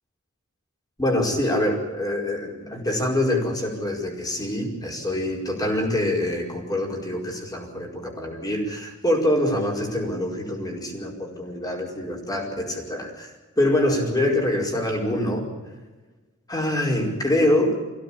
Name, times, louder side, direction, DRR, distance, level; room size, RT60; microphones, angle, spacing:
voice 1, 1.0-15.5 16.5-17.8, left 1 dB, 20° left, 1 dB, 4.9 m, -25 dB
25.0 x 17.0 x 8.6 m, 1.3 s
head